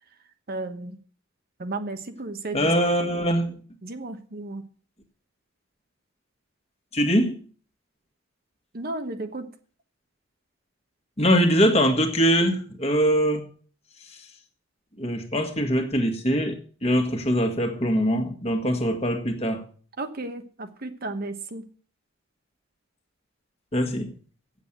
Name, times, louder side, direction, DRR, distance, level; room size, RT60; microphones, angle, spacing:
voice 1, 0.5-1.0 1.6-2.7 3.8-4.6 8.7-9.5 20.0-21.6, right 2 dB, 50° right, 1.1 m, -33 dB
voice 2, 2.5-3.5 6.9-7.3 11.2-13.4 15.0-19.6 23.7-24.1, equal, 30° left, 1.8 m, -22 dB
8.3 x 7.6 x 8.7 m
head